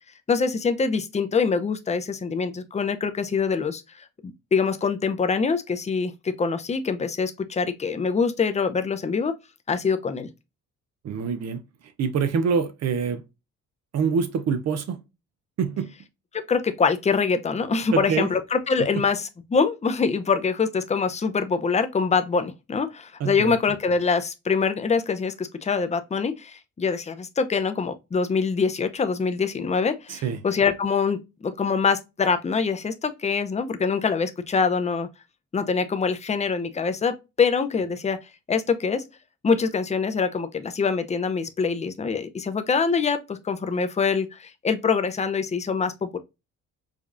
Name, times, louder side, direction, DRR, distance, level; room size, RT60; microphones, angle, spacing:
voice 1, 0.3-4.0 4.5-9.3 9.7-10.3 16.3-35.1 35.5-38.2 38.5-39.1 39.4-46.2, left 5 dB, 25° left, 0.6 m, -24 dB
voice 2, 11.0-11.6 12.0-13.2 13.9-15.0 15.6-15.9 17.9-18.3 23.2-23.6 30.1-30.4, right 6 dB, 60° right, 0.6 m, -25 dB
4.9 x 2.3 x 2.5 m
cardioid pair, 90°, 30 cm